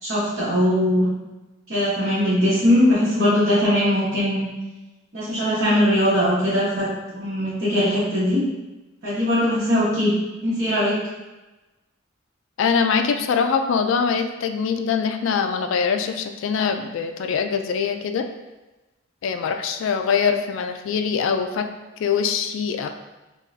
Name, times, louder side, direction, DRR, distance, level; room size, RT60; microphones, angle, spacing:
voice 1, 0.0-1.1 1.7-4.5 5.1-6.9 7.1-8.4 9.0-10.1 10.4-11.0, left 1 dB, 55° right, -11 dB, 1.2 m, -20 dB
voice 2, 12.6-18.2 19.2-21.7 22.0-22.9, left 6 dB, 65° left, 7 dB, 0.3 m, -23 dB
5.2 x 2.4 x 2.6 m, 1.1 s
head